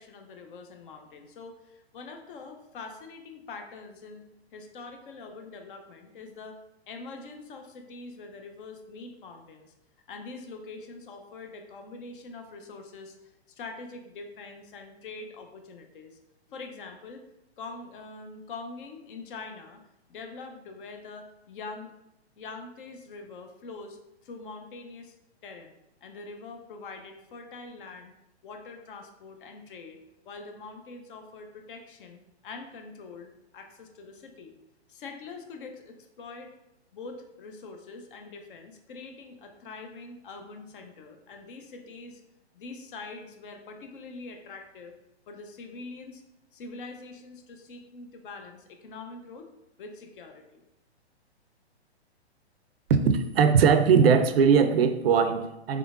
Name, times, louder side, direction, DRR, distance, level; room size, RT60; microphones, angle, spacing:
voice 1, 0.0-4.2 4.5-6.6 6.9-9.7 10.1-13.2 13.5-16.2 16.5-17.2 17.6-19.8 20.1-21.9 22.4-25.2 25.4-28.1 28.4-30.0 30.3-34.5 34.9-36.5 36.9-42.2 42.5-44.9 45.3-46.2 46.5-49.5 49.8-50.6, left 3 dB, 50° left, 5 dB, 0.6 m, -44 dB
voice 2, 52.9-55.8, right 6 dB, 60° right, 10 dB, 0.4 m, -20 dB
3.7 x 3.2 x 2.4 m, 0.88 s
hypercardioid pair, 125°, 33 cm